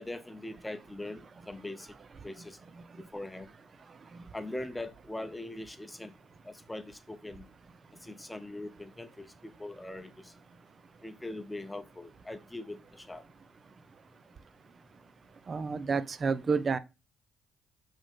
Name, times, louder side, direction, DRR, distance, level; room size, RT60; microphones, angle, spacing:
voice 1, 0.0-1.9 2.2-2.6 3.0-3.5 4.3-6.1 6.4-7.5 8.0-10.3 11.0-13.2, left 1 dB, 15° left, 0.7 m, -41 dB
voice 2, 15.5-16.8, right 5 dB, 45° right, 0.6 m, -29 dB
7.3 x 3.6 x 3.6 m
hypercardioid pair, 50°, 0 cm